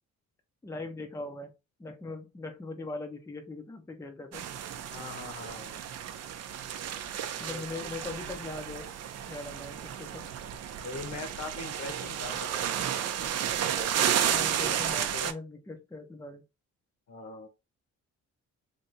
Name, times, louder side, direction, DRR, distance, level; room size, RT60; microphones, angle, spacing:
voice 1, 0.6-1.5 1.8-4.5 7.4-8.9 9.3-10.3 14.3-16.4, left 2 dB, 10° left, 4 dB, 0.6 m, -40 dB
sound 1, 4.3-15.3, right 9 dB, 55° right, 0.5 m, -32 dB
voice 2, 4.9-5.7 7.3-7.9 10.7-13.3 13.8-15.3 17.1-17.5, left 3 dB, 65° left, 4 dB, 1.1 m, -43 dB
3.2 x 2.7 x 2.6 m, 0.26 s
cardioid pair, 90°, 30 cm